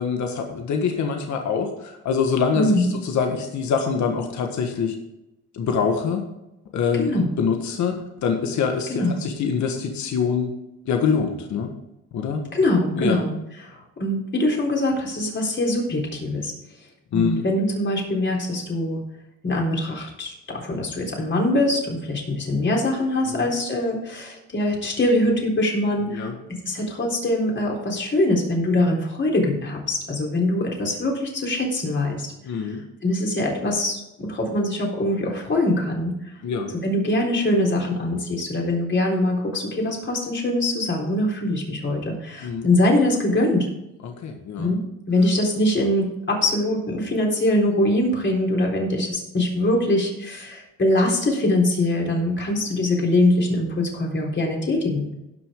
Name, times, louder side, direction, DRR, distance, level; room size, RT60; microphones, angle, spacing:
voice 1, 0.0-4.9 5.5-6.2 6.7-7.9 8.2-10.5 10.8-11.7 12.1-12.4 13.0-13.2 17.1-17.4 23.3-23.5 26.1-26.3 32.4-32.8 36.4-36.7 42.4-42.7 44.0-44.7, left 6 dB, 70° left, 4 dB, 1.5 m, -24 dB
voice 2, 2.5-2.9 6.9-7.3 8.9-9.2 12.5-13.3 13.6-16.5 17.1-19.0 19.4-26.3 26.6-36.1 36.8-43.7 44.6-44.8 45.1-55.1, left 1 dB, 40° left, -1 dB, 3.9 m, -23 dB
17.0 x 6.3 x 3.7 m, 0.91 s
cardioid pair, 90°, 30 cm